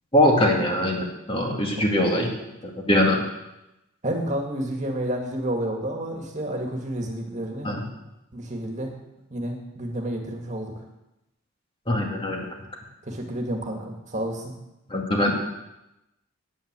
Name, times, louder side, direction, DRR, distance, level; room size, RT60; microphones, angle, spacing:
voice 1, 0.1-2.3 2.9-3.2 7.6-7.8 11.9-12.4 14.9-15.3, left 1 dB, 25° left, 0 dB, 2.2 m, -21 dB
voice 2, 4.0-7.8 8.3-8.9 9.3-10.7 13.1-14.5, right 1 dB, 35° right, 2 dB, 2.0 m, -30 dB
9.6 x 9.4 x 8.2 m, 0.91 s
head